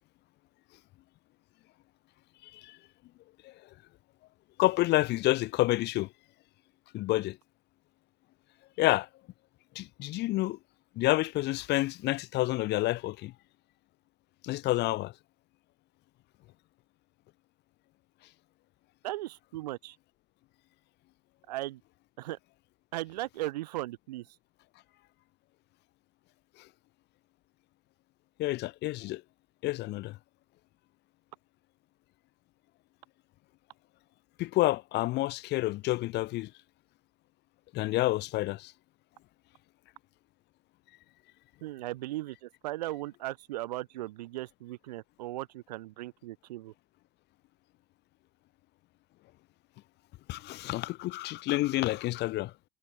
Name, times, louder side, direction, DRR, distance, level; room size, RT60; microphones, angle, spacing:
voice 1, 2.4-2.8 3.4-3.5 4.6-6.1 6.9-7.4 8.8-9.1 9.7-10.6 11.0-13.3 14.4-15.1 28.4-29.2 29.6-30.2 34.4-36.5 37.7-38.7 50.3-52.5, left 18 dB, 55° left, 0.9 m, -29 dB
voice 2, 19.0-20.0 21.5-21.8 22.2-22.4 22.9-24.3 41.6-46.7, right 16 dB, 80° right, 0.5 m, -37 dB
hypercardioid pair, 65°, 21 cm